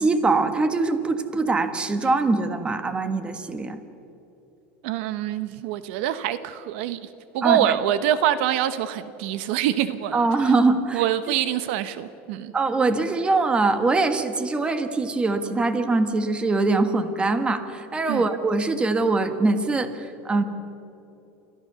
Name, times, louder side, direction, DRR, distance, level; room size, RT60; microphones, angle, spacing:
voice 1, 0.0-3.8 7.4-7.7 10.1-11.0 12.5-20.4, right 3 dB, 15° right, 9 dB, 1.5 m, -23 dB
voice 2, 4.8-7.1 7.3-10.3 10.9-12.5 18.1-18.2, right 11 dB, 70° right, 13 dB, 1.0 m, -25 dB
29.5 x 14.0 x 6.9 m, 2.9 s
supercardioid pair, 135°, 6 cm